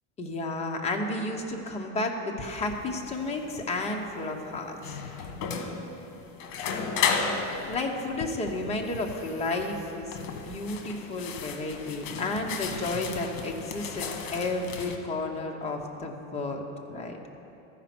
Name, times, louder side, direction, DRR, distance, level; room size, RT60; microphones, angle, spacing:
voice 1, 0.2-5.0 7.6-17.2, left 2 dB, 15° left, 1 dB, 0.8 m, -32 dB
sound 1, 2.6-15.0, left 5 dB, 65° left, 1.2 m, -34 dB
14.0 x 5.1 x 5.9 m, 3.0 s
supercardioid pair, 150°, 39 cm